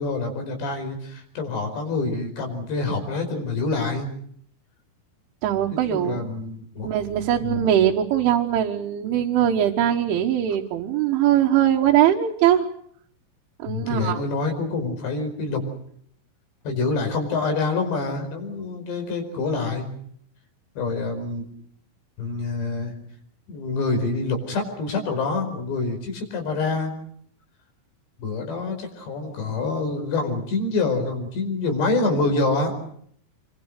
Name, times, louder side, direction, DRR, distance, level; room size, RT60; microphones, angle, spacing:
voice 1, 0.0-4.1 5.9-6.9 7.4-7.6 13.7-15.6 16.7-19.9 20.8-21.4 22.2-22.9 23.5-27.0 28.2-32.8, left 3 dB, 60° left, 5 dB, 7.1 m, -26 dB
voice 2, 5.4-6.2 6.8-12.7 13.6-14.2, right 11 dB, 75° right, -1 dB, 3.7 m, -21 dB
27.5 x 24.0 x 6.6 m, 0.66 s
omnidirectional pair, 5.8 m